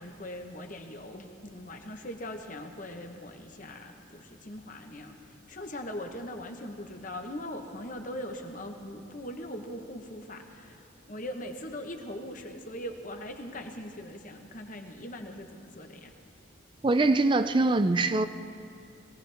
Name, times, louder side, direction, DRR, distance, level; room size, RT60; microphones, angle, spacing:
voice 1, 0.0-16.1, left 1 dB, 40° left, 4 dB, 1.1 m, -41 dB
voice 2, 16.8-18.3, right 2 dB, 25° right, 11 dB, 0.4 m, -23 dB
21.5 x 16.5 x 3.5 m, 2.6 s
head